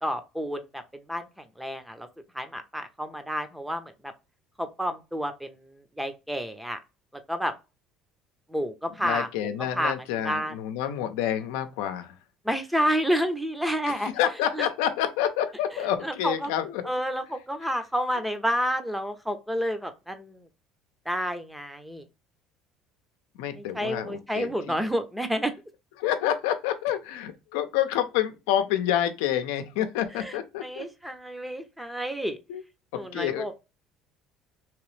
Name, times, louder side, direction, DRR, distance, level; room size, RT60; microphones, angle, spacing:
voice 1, 0.0-0.8 1.1-1.3 1.6-2.1 2.3-3.9 4.6-5.5 6.0-6.8 7.3-7.5 8.5-9.5 9.7-9.9 10.2-10.5 12.4-14.1 14.6-14.7 16.0-16.5 16.9-20.4 21.1-22.0 23.7-25.5 30.2-30.3 30.6-32.4 32.9-33.5, equal, 5° right, 0.7 m, -29 dB
voice 2, 9.0-12.1 13.9-16.9 23.3-24.7 26.0-30.9 32.5-32.6 33.1-33.5, left 11 dB, 85° left, 0.6 m, -28 dB
3.0 x 2.9 x 3.2 m
cardioid pair, 110°, 0 cm